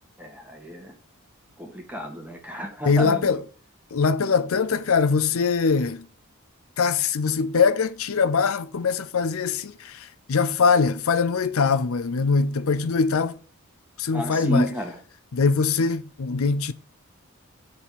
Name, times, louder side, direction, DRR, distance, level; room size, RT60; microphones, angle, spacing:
voice 1, 0.2-0.9 1.6-3.4 14.1-15.0, equal, 5° right, 1.6 m, -31 dB
voice 2, 2.8-3.4 3.9-6.0 6.8-13.4 14.0-14.7 15.3-16.7, left 5 dB, 70° left, 0.5 m, -22 dB
7.9 x 4.2 x 7.0 m
head